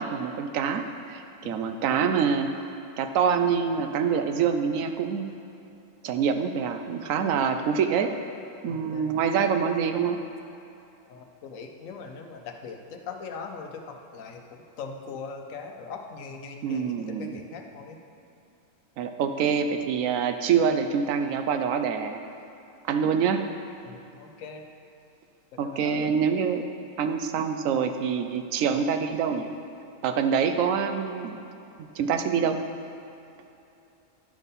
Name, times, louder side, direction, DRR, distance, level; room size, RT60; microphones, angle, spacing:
voice 1, 0.0-2.5 3.0-5.3 6.0-8.1 8.6-10.2 16.6-17.4 19.0-22.2 22.9-23.5 25.6-26.6 27.0-29.5 30.0-31.4 31.8-32.6, right 6 dB, 85° right, 7 dB, 1.0 m, -25 dB
voice 2, 8.7-9.2 11.1-18.0 23.9-24.6 25.5-26.1 31.7-31.8, left 5 dB, 90° left, 4 dB, 1.1 m, -41 dB
10.5 x 4.1 x 5.4 m, 2.8 s
omnidirectional pair, 1.4 m